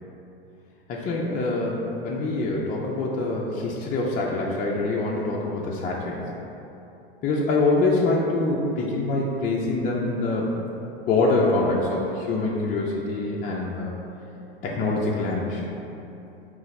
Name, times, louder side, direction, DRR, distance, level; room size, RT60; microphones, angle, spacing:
voice 1, 0.9-6.2 7.2-10.5 11.1-13.9 14.6-15.7, left 2 dB, 25° left, -3 dB, 0.4 m, -25 dB
4.0 x 2.5 x 3.9 m, 2.9 s
hypercardioid pair, 100°, 30 cm